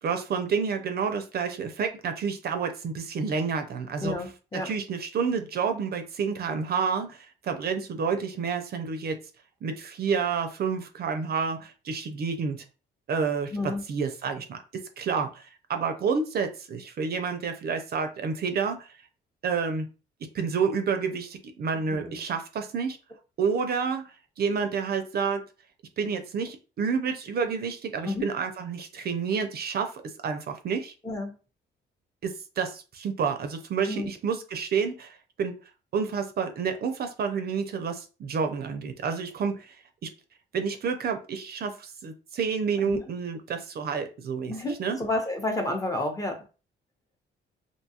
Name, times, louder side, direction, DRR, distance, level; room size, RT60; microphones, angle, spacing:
voice 1, 0.0-4.1 4.5-9.2 9.6-12.6 13.1-14.6 15.0-19.0 19.4-19.9 20.3-23.0 23.4-24.1 24.4-25.4 26.0-30.9 32.2-35.5 35.9-39.8 40.0-40.1 40.5-44.5 44.8-45.0, right 5 dB, 50° right, 7 dB, 0.4 m, -29 dB
voice 2, 4.0-4.7 13.5-13.8 21.9-22.2 28.0-28.3 31.0-31.3 33.9-34.1 42.8-43.0 44.5-46.4, left 2 dB, 15° left, 3 dB, 0.7 m, -30 dB
2.7 x 2.3 x 2.7 m, 0.34 s
cardioid pair, 90°, 20 cm